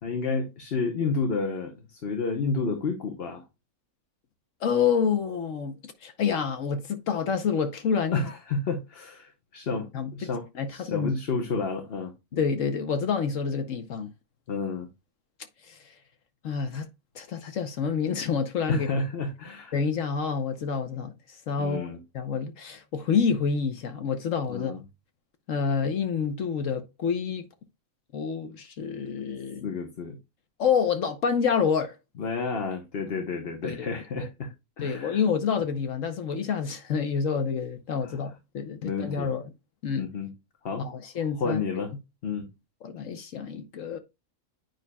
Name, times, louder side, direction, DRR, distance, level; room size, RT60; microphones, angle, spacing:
voice 1, 0.0-3.4 8.1-12.4 14.5-14.9 18.7-19.7 21.6-22.0 24.5-24.8 29.6-30.2 32.2-35.2 38.0-38.2 38.8-39.3 40.0-40.3 40.6-40.9 41.4-41.9 42.2-42.5, left 4 dB, 50° left, 1.1 m, -31 dB
voice 2, 4.6-8.3 9.9-10.3 10.5-11.1 12.4-14.1 15.7-15.8 16.4-16.9 17.1-18.9 19.7-24.7 25.5-27.4 28.1-29.7 30.6-31.9 33.6-33.9 34.2-34.3 34.8-39.4 39.8-40.1 40.8-41.6 42.8-44.0, left 6 dB, 70° left, 1.2 m, -28 dB
9.2 x 5.5 x 2.2 m
omnidirectional pair, 1.4 m